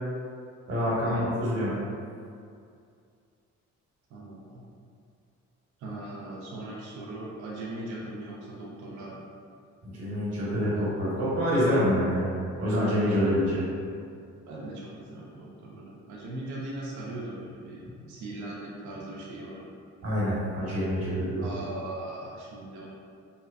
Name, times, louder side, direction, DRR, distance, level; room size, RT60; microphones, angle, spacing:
voice 1, 0.7-1.7 9.8-12.3 12.6-13.6 17.8-17.9 20.0-21.5, equal, 60° right, -7 dB, 1.1 m, -26 dB
voice 2, 4.1-4.6 5.8-9.2 14.5-17.8 18.1-19.7 21.4-22.9, right 1 dB, 75° right, -5 dB, 0.5 m, -39 dB
2.7 x 2.2 x 2.3 m, 2.3 s
cardioid pair, 90°, 30 cm